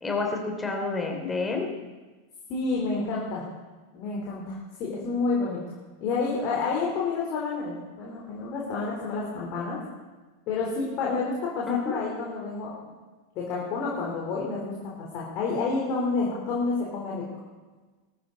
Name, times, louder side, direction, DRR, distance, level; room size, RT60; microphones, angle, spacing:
voice 1, 0.0-1.7 11.7-12.0, left 4 dB, 10° left, 2 dB, 3.1 m, -29 dB
voice 2, 2.5-3.4 3.9-5.6 6.0-9.8 10.5-12.7 13.4-17.2, left 4 dB, 40° left, -4 dB, 3.9 m, -29 dB
20.5 x 13.5 x 4.1 m, 1.3 s
figure-of-eight pair, 90°, 0 cm